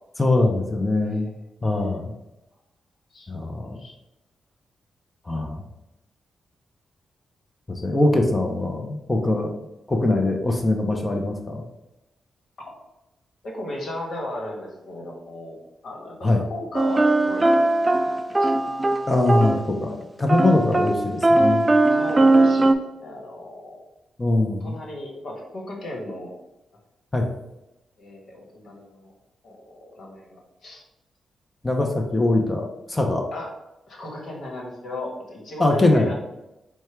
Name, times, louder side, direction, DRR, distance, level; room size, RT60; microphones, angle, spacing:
voice 1, 0.2-1.3 1.6-2.1 3.3-3.8 5.3-5.6 7.7-9.5 9.9-11.6 16.2-16.4 19.1-21.7 24.2-24.8 27.1-27.3 31.6-33.2 35.6-36.1, left 2 dB, 25° left, 3 dB, 0.7 m, -22 dB
voice 2, 13.4-15.6 15.8-17.9 18.4-18.5 21.9-23.8 24.6-26.3 28.0-29.1 29.4-30.8 33.3-33.5 33.9-36.1, left 1 dB, 65° left, 0 dB, 1.3 m, -36 dB
sound 1, 16.7-19.8 20.3-22.7, right 2 dB, 30° right, 0.4 m, -19 dB
4.5 x 2.3 x 4.5 m, 0.93 s
supercardioid pair, 45°, 0 cm